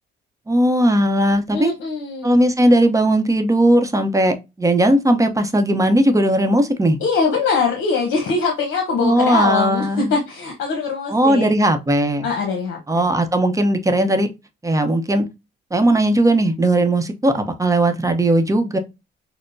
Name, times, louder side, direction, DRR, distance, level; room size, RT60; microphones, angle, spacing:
voice 1, 0.5-1.7 2.2-7.0 9.0-10.1 11.1-12.2 12.9-14.3 14.6-15.3 15.7-18.8, right 1 dB, 15° right, 0.8 m, -17 dB
voice 2, 1.5-2.4 7.0-11.5 12.2-13.1, left 4 dB, 70° left, 1.0 m, -22 dB
6.3 x 2.1 x 2.6 m
cardioid pair, 90°, 20 cm